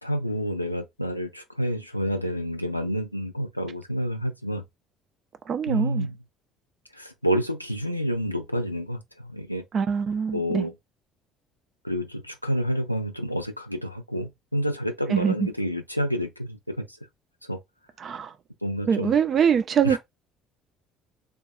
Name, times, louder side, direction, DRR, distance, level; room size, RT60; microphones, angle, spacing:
voice 1, 0.0-4.6 5.7-6.1 6.9-9.6 10.3-10.7 11.8-16.9 17.4-17.6 18.6-19.1 19.8-20.0, equal, 90° left, 0.4 m, -29 dB
voice 2, 5.5-6.1 9.7-10.7 15.1-15.5 18.0-18.3 18.9-20.0, right 7 dB, 40° right, 0.4 m, -23 dB
3.7 x 2.3 x 2.4 m
figure-of-eight pair, 55°, 0 cm